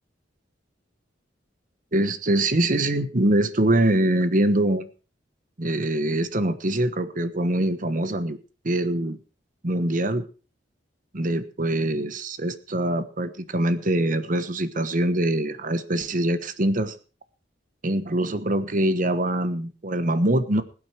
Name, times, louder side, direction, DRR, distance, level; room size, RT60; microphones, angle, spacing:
voice 1, 1.9-4.9 5.6-8.4 8.6-9.2 9.6-10.2 11.1-16.9 17.8-20.6, right 1 dB, 45° right, 12 dB, 1.2 m, -23 dB
20.5 x 8.7 x 4.6 m, 0.36 s
head